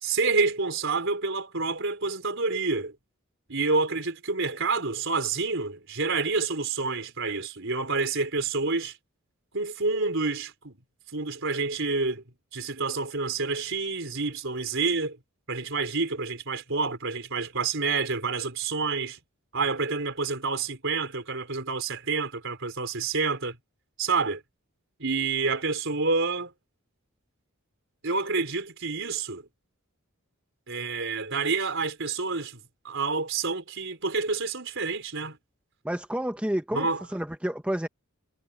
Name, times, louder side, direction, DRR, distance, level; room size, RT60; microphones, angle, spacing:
voice 1, 0.0-2.9 3.5-9.0 9.5-10.8 11.1-12.2 12.5-15.2 15.5-19.2 19.5-23.6 24.0-24.4 25.0-26.5 28.0-29.5 30.7-35.4 36.7-37.0, right 4 dB, 60° right, 4.8 m, -28 dB
voice 2, 35.8-36.9 37.1-37.9, right 1 dB, 5° right, 1.0 m, -29 dB
head